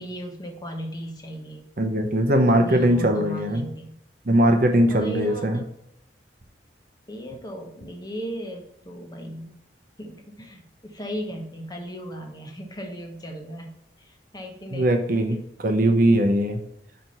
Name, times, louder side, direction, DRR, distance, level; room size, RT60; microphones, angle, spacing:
voice 1, 0.0-1.6 2.5-4.0 4.9-5.7 7.1-9.5 10.0-15.0 15.3-15.4, equal, 20° left, 2 dB, 1.1 m, -36 dB
voice 2, 1.8-3.7 4.3-5.6 14.7-16.6, right 1 dB, 50° right, 5 dB, 0.8 m, -20 dB
5.2 x 4.6 x 5.4 m, 0.77 s
head